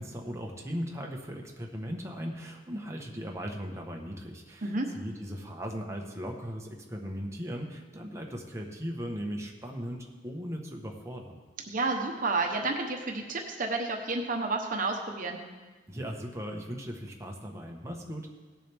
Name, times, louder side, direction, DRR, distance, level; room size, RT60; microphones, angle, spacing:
voice 1, 0.0-11.4 15.9-18.3, equal, 15° right, 1 dB, 1.1 m, -38 dB
voice 2, 11.7-15.4, right 3 dB, 50° right, 3 dB, 1.0 m, -30 dB
17.5 x 7.6 x 3.5 m, 1.3 s
head